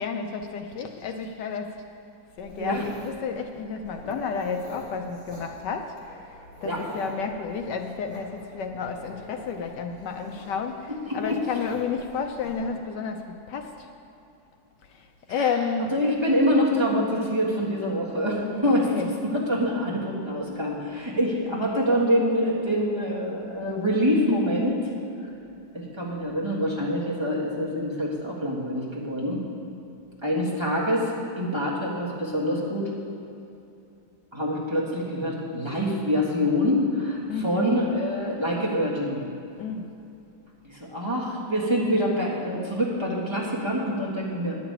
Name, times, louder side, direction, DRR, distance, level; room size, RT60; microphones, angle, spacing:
voice 1, 0.0-1.8 2.4-6.0 6.3-13.9 14.9-15.9 18.9-19.1 37.3-37.8 39.6-39.9, left 5 dB, 75° left, 5 dB, 1.2 m, -31 dB
Dog, 2.4-12.6, equal, 15° left, 2.7 m, -46 dB
voice 2, 11.1-11.4 15.4-15.5 15.9-18.9 19.2-24.8 25.7-29.4 30.2-31.1 31.4-32.9 34.3-39.2 40.6-44.6, equal, 15° right, -5 dB, 1.5 m, -25 dB
11.0 x 6.0 x 8.7 m, 2.8 s
omnidirectional pair, 2.0 m